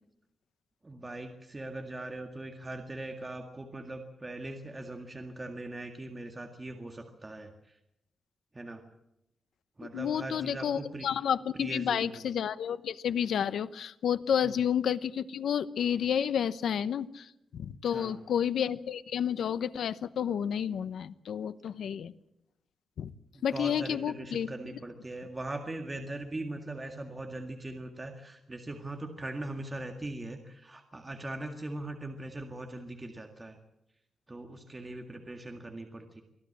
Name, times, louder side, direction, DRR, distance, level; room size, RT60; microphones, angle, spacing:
voice 1, 0.8-7.8 8.5-8.8 9.8-11.1 11.5-12.1 14.4-14.6 17.9-18.2 23.3-33.6 34.3-36.2, right 2 dB, 20° right, 4 dB, 1.9 m, -40 dB
voice 2, 9.9-22.1 23.0-23.1 23.4-24.5, left 8 dB, 90° left, 14 dB, 0.9 m, -30 dB
24.0 x 15.5 x 8.6 m, 0.83 s
wide cardioid pair, 155°, 0 cm